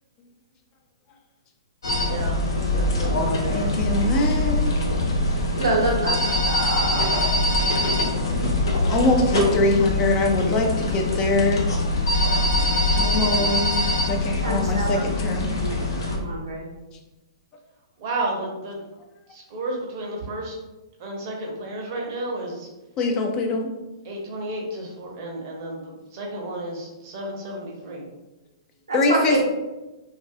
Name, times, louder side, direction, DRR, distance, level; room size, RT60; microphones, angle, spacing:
sound 1, 1.8-16.2, left 1 dB, 65° left, 0.6 m, -23 dB
voice 1, 2.1-4.0 9.3-9.5 18.0-18.8 19.3-20.5 21.0-22.7 24.1-28.0, right 2 dB, 40° right, -1 dB, 0.7 m, -32 dB
voice 2, 3.5-4.7 8.9-11.7 12.9-15.5 23.0-23.7 28.9-29.4, left 2 dB, 25° left, 2 dB, 0.4 m, -23 dB
voice 3, 5.6-7.2 14.4-15.0 15.6-15.7 16.1-16.7 28.9-29.4, right 2 dB, 75° right, -2 dB, 0.7 m, -26 dB
2.3 x 2.2 x 2.6 m, 1.1 s
figure-of-eight pair, 115°, 2 cm